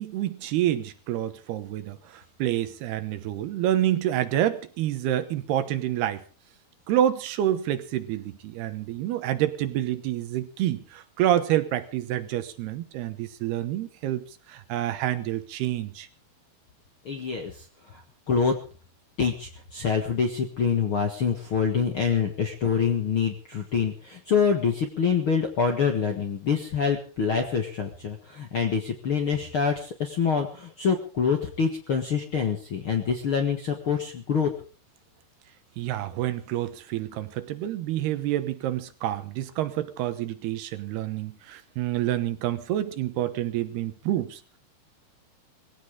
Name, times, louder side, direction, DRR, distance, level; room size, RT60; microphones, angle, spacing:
voice 1, 0.0-6.2 6.9-16.1 35.8-44.6, right 12 dB, 75° right, 11 dB, 3.1 m, -28 dB
voice 2, 17.0-17.6 18.3-18.5 19.2-34.5, left 6 dB, 55° left, 3 dB, 1.5 m, -26 dB
20.5 x 16.5 x 3.7 m, 0.37 s
omnidirectional pair, 4.7 m